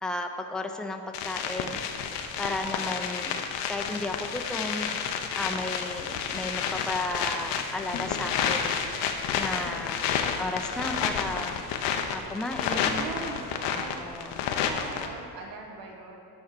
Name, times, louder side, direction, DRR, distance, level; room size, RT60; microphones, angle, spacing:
voice 1, 0.0-1.8 2.4-4.9 5.4-8.8 9.4-11.6 12.1-13.1 13.7-14.4, left 2 dB, ahead, 4 dB, 0.4 m, -34 dB
sound 1, 1.1-15.1, left 7 dB, 80° left, 0.8 m, -30 dB
sound 2, 7.9-15.3, left 4 dB, 60° left, 1.0 m, -49 dB
voice 2, 12.7-14.1 14.4-16.2, right 3 dB, 80° right, 1 dB, 1.4 m, -40 dB
8.6 x 4.4 x 6.7 m, 2.8 s
cardioid pair, 115°, 42 cm